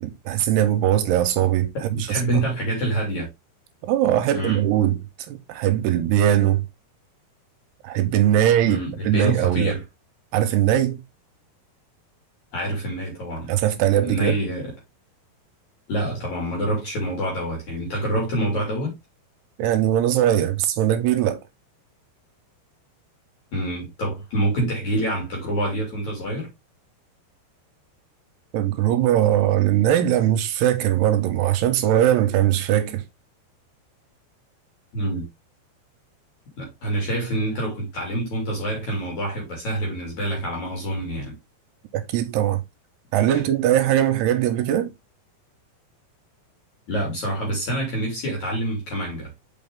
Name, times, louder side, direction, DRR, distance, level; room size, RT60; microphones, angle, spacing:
voice 1, 0.0-2.4 3.8-5.0 5.3-6.6 7.8-8.8 9.0-9.7 10.3-11.0 13.5-14.4 19.6-21.4 28.5-33.0 41.9-42.6 43.1-44.9, right 11 dB, 80° right, 2.5 m, -20 dB
voice 2, 1.7-3.3 4.3-4.6 8.6-9.8 12.5-13.5 14.0-14.7 15.9-18.9 23.5-26.5 34.9-35.3 36.6-41.3 46.9-49.3, right 1 dB, 45° left, 3.8 m, -26 dB
6.4 x 5.5 x 3.6 m
omnidirectional pair, 5.1 m